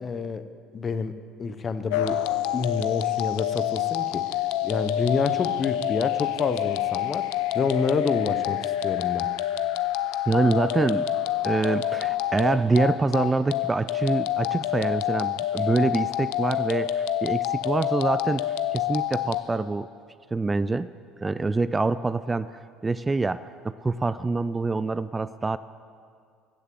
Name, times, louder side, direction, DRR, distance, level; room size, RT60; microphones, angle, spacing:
voice 1, 0.0-0.4 0.7-2.2 2.5-4.2 4.6-7.3 7.5-9.3, left 5 dB, 35° left, 11 dB, 0.8 m, -28 dB
sound 1, 1.9-19.4, left 12 dB, 80° left, 0.6 m, -27 dB
voice 2, 10.3-11.0 11.4-18.4 18.7-19.9 20.3-20.9 21.2-22.5 22.8-23.4 23.6-25.6, right 3 dB, 20° right, 15 dB, 0.3 m, -25 dB
15.0 x 6.6 x 7.8 m, 2.2 s
supercardioid pair, 80°, 0 cm